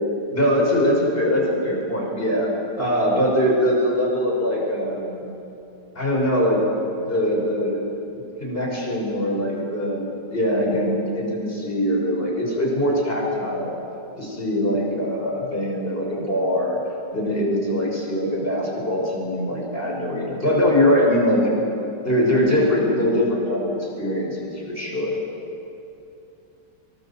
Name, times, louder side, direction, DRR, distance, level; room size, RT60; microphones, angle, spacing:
voice 1, 0.3-2.5 2.8-5.2 5.9-6.6 7.0-7.8 8.2-13.8 14.2-16.8 17.1-21.5 22.0-25.2, equal, 30° left, -2 dB, 6.6 m, -22 dB
24.5 x 24.0 x 7.6 m, 2.7 s
omnidirectional pair, 1.9 m